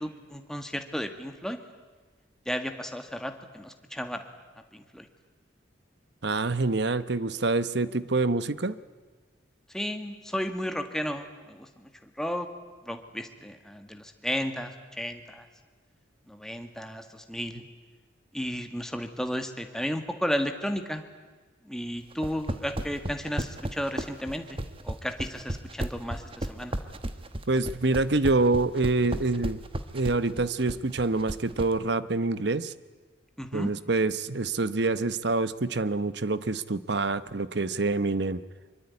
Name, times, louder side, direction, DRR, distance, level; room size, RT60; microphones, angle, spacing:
voice 1, 0.0-1.6 2.5-4.3 4.7-5.1 9.7-12.5 12.9-15.5 16.3-17.6 18.3-21.0 21.6-26.8 33.4-33.7, equal, 5° left, 6 dB, 1.8 m, -33 dB
voice 2, 6.2-8.7 27.5-29.6 29.9-32.7 33.5-38.4, right 3 dB, 60° right, 15 dB, 0.9 m, -26 dB
sound 1, 22.1-31.7, right 1 dB, 30° right, 1.3 m, -34 dB
24.5 x 23.5 x 9.7 m, 1.4 s
head